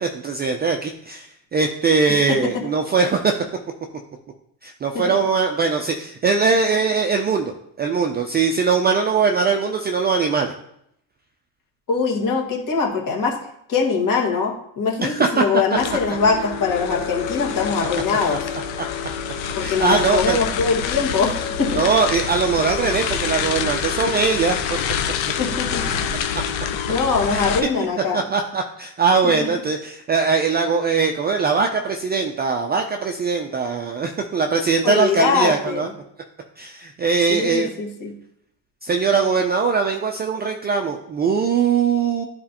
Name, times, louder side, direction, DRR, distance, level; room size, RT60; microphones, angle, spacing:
voice 1, 0.0-3.3 4.6-10.5 15.0-15.5 18.3-18.4 18.8-18.9 19.6-20.4 21.7-24.8 27.3-27.5 28.1-35.9 36.6-37.7 38.8-42.2, right 5 dB, 20° right, 4 dB, 0.4 m, -21 dB
voice 2, 2.3-2.6 4.9-5.0 11.9-13.4 13.7-18.5 19.5-21.8 25.3-26.0 26.9-28.2 29.2-29.3 34.8-35.9 37.3-38.1, left 4 dB, 40° left, 0 dB, 1.8 m, -22 dB
sound 1, 15.8-27.6, left 8 dB, 65° left, 0.9 m, -26 dB
9.8 x 4.2 x 2.9 m, 0.74 s
supercardioid pair, 105°, 49 cm